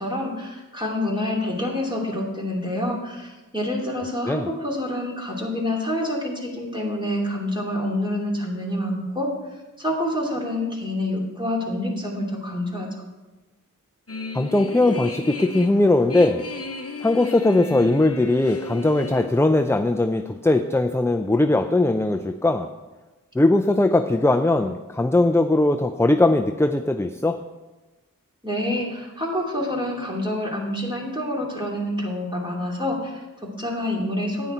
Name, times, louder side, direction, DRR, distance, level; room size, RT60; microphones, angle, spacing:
voice 1, 0.0-9.3 9.8-12.9 28.4-34.5, left 1 dB, 15° right, -3 dB, 2.8 m, -27 dB
sound 1, 14.1-19.3, left 4 dB, 45° left, 0.8 m, -35 dB
voice 2, 14.3-16.4 17.0-22.7 23.4-27.4, left 2 dB, 10° left, 6 dB, 0.5 m, -20 dB
9.6 x 9.4 x 4.4 m, 1.1 s
wide cardioid pair, 45°, 34 cm